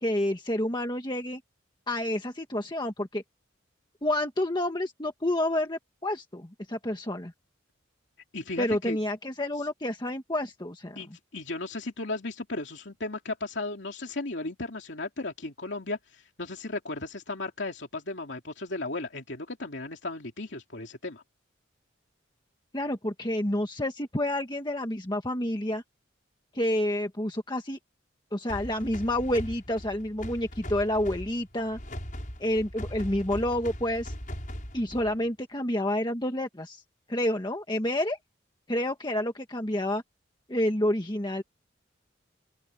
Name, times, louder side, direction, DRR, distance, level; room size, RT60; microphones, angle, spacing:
voice 1, 0.0-1.4 1.9-3.2 4.0-7.3 8.6-11.0 22.7-25.8 26.5-27.8 28.3-31.8 32.4-34.1 34.7-36.8 37.1-38.2 38.7-40.0 40.5-41.4, left 1 dB, 20° left, 1.6 m, -29 dB
voice 2, 8.3-9.0 11.0-21.2, left 2 dB, 65° left, 2.8 m, -35 dB
sound 1, 28.5-35.3, equal, 40° left, 7.2 m, -39 dB
open air
head